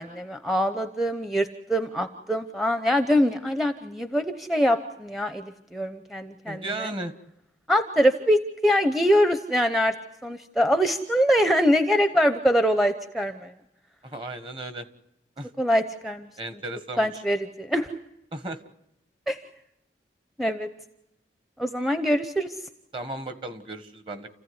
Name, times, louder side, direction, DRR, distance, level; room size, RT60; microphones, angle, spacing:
voice 1, 0.0-6.9 7.7-9.9 10.2-13.5 15.6-16.3 17.0-17.9 19.3-19.4 20.4-20.7 21.6-22.5, equal, ahead, 8 dB, 0.8 m, -24 dB
voice 2, 6.5-7.1 14.0-14.9 15.4-15.5 16.4-17.2 18.3-18.6 22.9-24.3, right 2 dB, 30° right, 11 dB, 1.6 m, -35 dB
29.5 x 15.5 x 9.7 m, 0.85 s
head